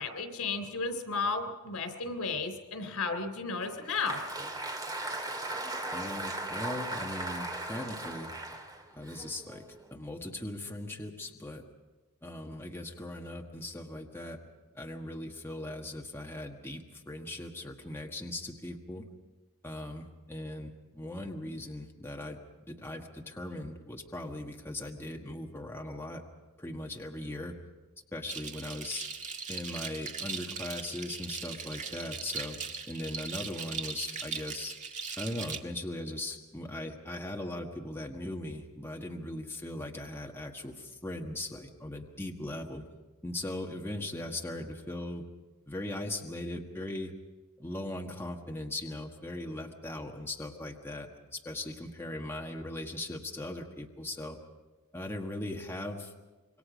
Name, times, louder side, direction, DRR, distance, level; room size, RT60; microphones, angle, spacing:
voice 1, 0.0-4.2, left 4 dB, 90° left, 8 dB, 3.6 m, -33 dB
Applause, 3.6-9.9, right 2 dB, 20° right, 2.3 m, -38 dB
voice 2, 5.9-8.3 8.9-9.6 9.9-11.6 12.2-14.4 14.7-19.1 19.6-22.4 22.7-26.2 26.6-27.5 28.1-29.0 29.5-32.6 32.9-34.7 35.2-42.8 43.2-45.2 45.7-47.1 47.6-54.4 54.9-56.1, left 1 dB, 10° left, 1 dB, 1.6 m, -39 dB
sound 1, 28.3-35.6, right 5 dB, 35° right, 1.8 m, -39 dB
27.0 x 23.0 x 5.2 m, 1.2 s
head